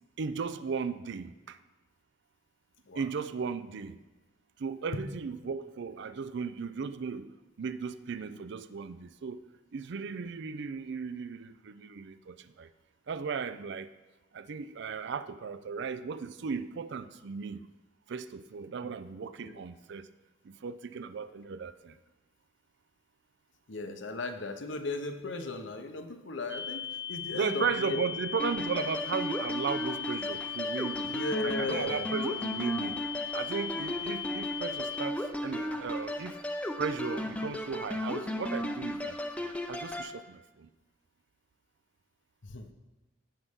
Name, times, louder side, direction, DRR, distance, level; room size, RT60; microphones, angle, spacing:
voice 1, 0.2-1.6 3.0-4.0 4.6-7.3 7.6-9.4 9.7-12.7 13.1-13.9 14.3-17.7 18.1-20.1 20.5-21.9 27.3-31.2 31.4-33.0 33.3-36.4 36.8-39.2 39.7-40.7, right 5 dB, 65° right, 13 dB, 0.4 m, -36 dB
voice 2, 23.7-28.0 31.1-32.1 42.4-42.7, left 2 dB, 70° left, 7 dB, 0.8 m, -36 dB
sound 1, 26.5-35.1, left 9 dB, 45° right, 1.5 m, -38 dB
sound 2, 28.4-40.1, left 1 dB, 5° left, 0.6 m, -35 dB
15.5 x 5.4 x 3.6 m, 1.2 s
head